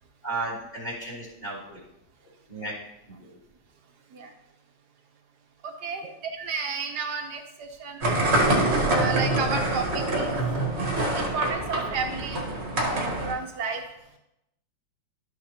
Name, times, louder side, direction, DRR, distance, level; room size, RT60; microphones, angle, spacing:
voice 1, 0.2-1.8 2.5-2.7 3.2-3.3, right 2 dB, 20° left, -6 dB, 3.0 m, -34 dB
voice 2, 5.6-8.1 8.9-10.4 11.1-12.4 12.9-13.8, right 5 dB, 60° right, 4 dB, 1.5 m, -32 dB
sound 1, 8.0-13.3, right 1 dB, 35° right, 1.5 m, -25 dB
12.0 x 6.5 x 2.9 m, 0.86 s
omnidirectional pair, 2.1 m